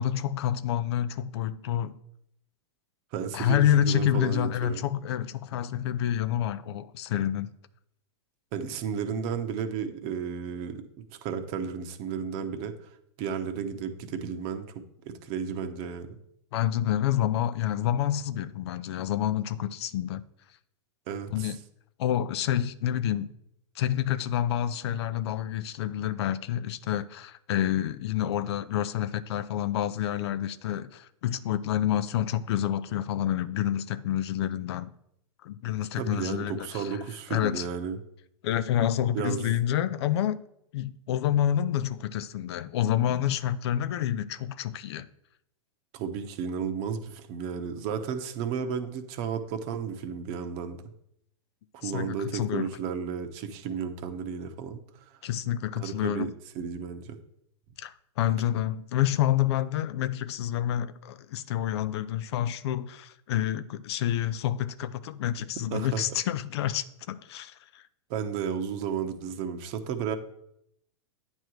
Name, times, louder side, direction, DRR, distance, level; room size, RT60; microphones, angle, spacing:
voice 1, 0.0-2.0 3.3-7.5 16.5-20.2 21.3-21.6 22.0-23.3 23.8-34.9 35.4-37.0 37.3-37.7 38.4-40.4 40.7-45.1 51.8-52.7 55.2-56.3 57.8-67.8, left 11 dB, 65° left, 0.5 m, -28 dB
voice 2, 3.1-4.8 8.5-10.8 11.2-12.9 13.2-14.7 15.0-16.2 21.1-21.5 36.0-38.0 39.1-39.5 45.9-50.8 51.7-55.1 55.8-56.3 56.5-57.2 65.7-66.0 68.1-70.1, right 7 dB, 45° right, 0.9 m, -33 dB
9.0 x 3.1 x 6.3 m
hypercardioid pair, 110°, 15 cm